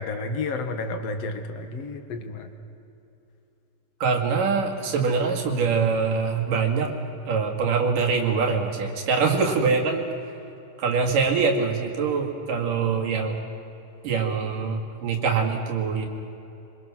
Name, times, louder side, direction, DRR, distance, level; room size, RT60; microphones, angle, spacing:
voice 1, 0.0-2.5, left 3 dB, 55° left, 7 dB, 2.3 m, -31 dB
voice 2, 4.0-6.9 7.3-10.0 10.8-13.3 14.0-16.1, right 5 dB, 75° right, 1 dB, 3.8 m, -24 dB
26.5 x 25.5 x 6.1 m, 2.9 s
omnidirectional pair, 3.9 m